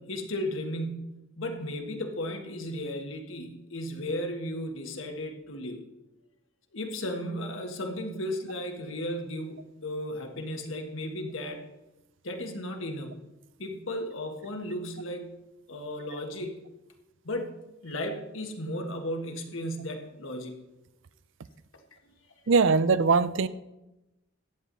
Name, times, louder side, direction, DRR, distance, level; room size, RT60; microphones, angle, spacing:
voice 1, 0.0-5.8 6.7-11.6 12.2-13.2 13.6-15.4 15.7-16.6 17.2-20.6, left 1 dB, 75° left, 4 dB, 1.6 m, -35 dB
voice 2, 22.5-23.5, right 4 dB, 65° right, 16 dB, 0.5 m, -21 dB
14.5 x 9.3 x 4.1 m, 0.97 s
head